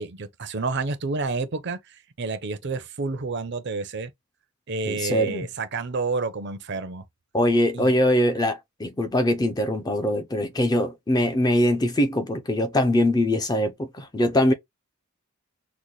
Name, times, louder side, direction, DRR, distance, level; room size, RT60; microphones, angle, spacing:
voice 1, 0.0-4.1 4.7-7.0 7.7-8.0, right 3 dB, 50° right, 0.6 m, -29 dB
voice 2, 4.9-5.5 7.3-14.5, left 1 dB, 15° left, 0.4 m, -22 dB
3.9 x 2.1 x 3.1 m
head